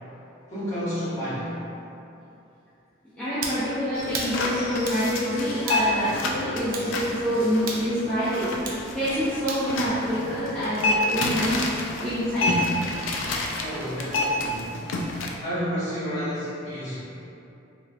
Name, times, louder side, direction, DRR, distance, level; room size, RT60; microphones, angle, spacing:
voice 1, 0.5-1.6 13.6-14.8 15.4-17.0, equal, 35° left, -12 dB, 1.2 m, -30 dB
voice 2, 3.2-8.5 8.9-11.6 11.9-12.6, equal, 5° left, -15 dB, 0.6 m, -26 dB
sound 1, 3.4-3.6 4.1-4.3 4.9-5.0 5.7-5.9 6.7-6.9 7.7-7.9 8.6-8.8 9.5-9.7, right 4 dB, 45° right, 0.4 m, -32 dB
sound 2, 3.9-15.3, left 2 dB, 85° left, 0.4 m, -29 dB
3.2 x 3.0 x 2.4 m, 2.8 s
head